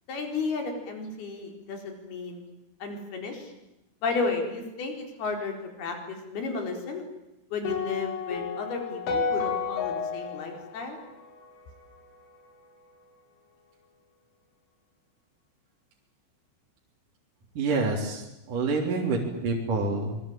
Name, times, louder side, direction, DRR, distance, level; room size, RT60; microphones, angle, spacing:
voice 1, 0.1-2.5 2.8-3.5 4.0-7.0 7.5-11.0, left 4 dB, 55° left, 4 dB, 6.2 m, -33 dB
sound 1, 7.6-11.9, left 5 dB, 80° left, 6.2 m, -32 dB
voice 2, 17.6-20.2, right 3 dB, 45° right, 0 dB, 4.7 m, -27 dB
25.5 x 23.5 x 8.9 m, 0.92 s
omnidirectional pair, 5.5 m